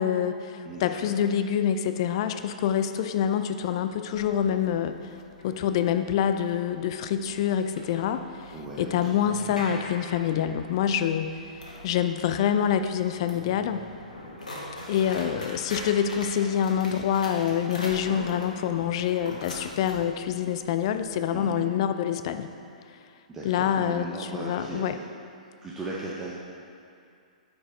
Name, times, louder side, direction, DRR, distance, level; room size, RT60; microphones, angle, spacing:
voice 1, 0.0-5.0 5.4-11.4 11.8-13.9 14.9-22.5 23.4-24.1 24.3-25.0, left 9 dB, 45° left, 9 dB, 0.4 m, -26 dB
sound 1, 4.1-21.1, left 1 dB, 75° left, 1.6 m, -42 dB
voice 2, 8.5-9.2 21.3-21.7 23.3-25.0 25.6-26.3, right 2 dB, 10° right, -6 dB, 0.8 m, -37 dB
9.0 x 4.5 x 4.3 m, 2.4 s
figure-of-eight pair, 115°, 4 cm